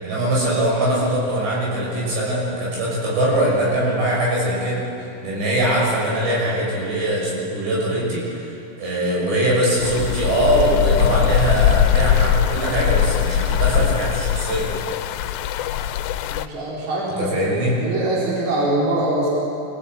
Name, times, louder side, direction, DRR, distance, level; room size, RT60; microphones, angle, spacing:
voice 1, 0.0-4.8 5.2-8.5 8.8-14.7 17.2-17.8, right 1 dB, 70° right, -5 dB, 8.5 m, -21 dB
sound 1, 9.8-16.5, left 10 dB, 80° left, 2.9 m, -21 dB
voice 2, 16.3-19.3, right 1 dB, 40° right, -5 dB, 5.2 m, -23 dB
26.5 x 17.5 x 9.0 m, 2.9 s
omnidirectional pair, 5.1 m